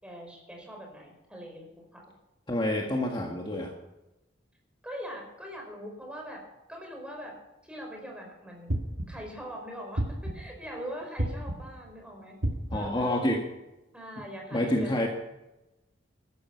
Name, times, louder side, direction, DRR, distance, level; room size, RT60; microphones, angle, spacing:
voice 1, 0.0-2.0 4.8-6.4 6.7-7.3 7.6-8.7 9.1-12.4 12.7-13.3 13.9-15.1, equal, 5° right, 1 dB, 4.7 m, -42 dB
voice 2, 2.5-3.7 12.7-13.4 14.5-15.1, left 1 dB, 25° left, 0 dB, 1.8 m, -28 dB
sound 1, 8.7-9.3 10.0-10.6 11.2-11.8 12.4-13.1, right 1 dB, 80° right, 1.8 m, -32 dB
15.5 x 12.5 x 5.8 m, 0.96 s
head